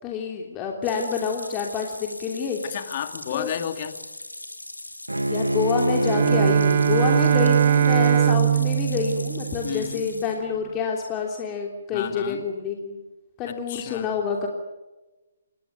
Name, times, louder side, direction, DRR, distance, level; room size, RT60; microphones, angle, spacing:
voice 1, 0.0-2.6 3.3-3.5 5.3-13.0 13.4-14.5, left 6 dB, 20° left, 1 dB, 3.2 m, -28 dB
sound 1, 0.8-10.4, left 1 dB, 90° left, 3.6 m, -40 dB
voice 2, 2.6-4.0 9.6-10.1 11.9-12.4 13.5-14.1, left 10 dB, 40° left, 8 dB, 2.6 m, -32 dB
Bowed string instrument, 5.1-10.2, right 1 dB, 90° right, 1.2 m, -28 dB
Bowed string instrument 2, 5.9-10.1, right 9 dB, 45° right, 0.8 m, -21 dB
27.0 x 21.5 x 9.4 m, 1.1 s
figure-of-eight pair, 135°, 0 cm